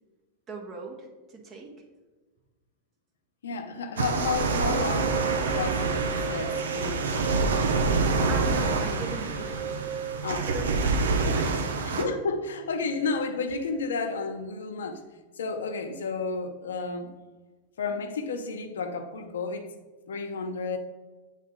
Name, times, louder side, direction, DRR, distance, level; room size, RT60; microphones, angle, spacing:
voice 1, 0.5-1.7 8.3-11.8, right 3 dB, 35° right, 1 dB, 1.6 m, -40 dB
voice 2, 3.4-5.2 5.5-7.3 10.2-10.5 11.9-15.0 15.4-17.1 17.8-19.7 20.1-20.8, left 4 dB, 85° left, 6 dB, 0.8 m, -31 dB
sound 1, 4.0-12.0, right 3 dB, 90° right, 0.8 m, -27 dB
sound 2, 4.6-13.2, right 7 dB, 55° right, 0.4 m, -37 dB
8.4 x 4.0 x 3.7 m, 1.3 s
hypercardioid pair, 120°, 0 cm